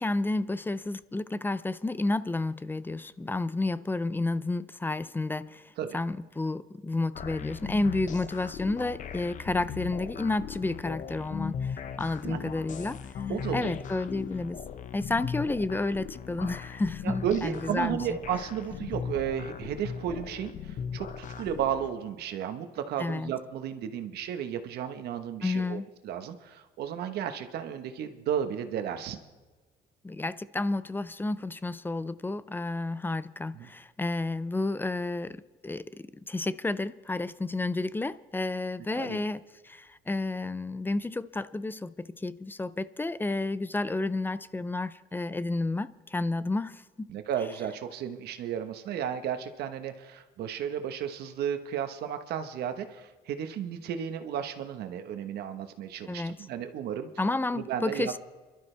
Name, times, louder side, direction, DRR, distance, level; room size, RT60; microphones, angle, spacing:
voice 1, 0.0-13.0 13.5-14.6 14.9-18.0 23.0-23.3 25.4-25.9 30.0-47.1 56.0-56.4 57.2-58.2, left 2 dB, 10° left, 0.4 m, -31 dB
sound 1, 7.1-21.9, left 7 dB, 50° left, 0.8 m, -38 dB
voice 2, 13.3-13.8 16.3-16.5 17.0-29.2 33.5-33.7 38.9-39.2 47.1-57.1 57.5-58.2, right 9 dB, 75° right, 1.2 m, -33 dB
26.0 x 12.5 x 3.3 m
cardioid pair, 110°, 17 cm